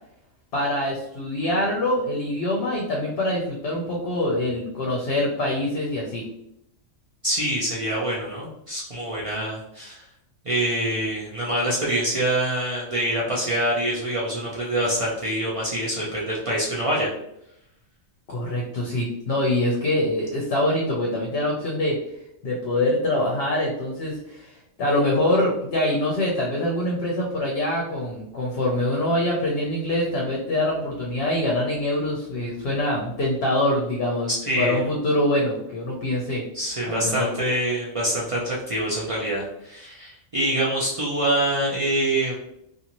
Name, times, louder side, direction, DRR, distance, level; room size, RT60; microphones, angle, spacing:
voice 1, 0.5-6.3 18.3-22.0 22.4-34.3 34.6-36.4 36.9-37.3, left 1 dB, 60° left, -2 dB, 0.7 m, -24 dB
voice 2, 7.2-10.0 10.4-17.1 34.3-34.8 36.5-42.3, right 1 dB, 65° right, -5 dB, 0.3 m, -25 dB
2.6 x 2.5 x 2.9 m, 0.80 s
omnidirectional pair, 1.3 m